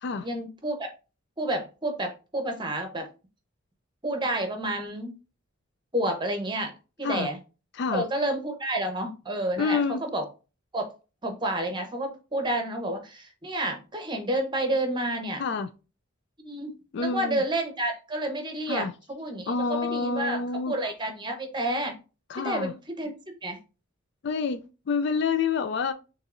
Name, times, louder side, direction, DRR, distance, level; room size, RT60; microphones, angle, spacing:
voice 1, 0.2-0.9 1.4-3.0 4.0-5.1 5.9-6.7 7.0-7.4 7.9-10.2 10.7-10.9 11.2-15.4 16.4-20.4 20.7-21.9 22.4-23.1 23.4-23.6, right 1 dB, 20° right, 0.9 m, -30 dB
voice 2, 9.6-10.0 15.4-15.7 16.9-17.4 18.7-18.9 19.5-20.8 22.3-22.7 24.2-25.9, left 5 dB, 55° left, 0.4 m, -28 dB
6.3 x 3.0 x 2.5 m
head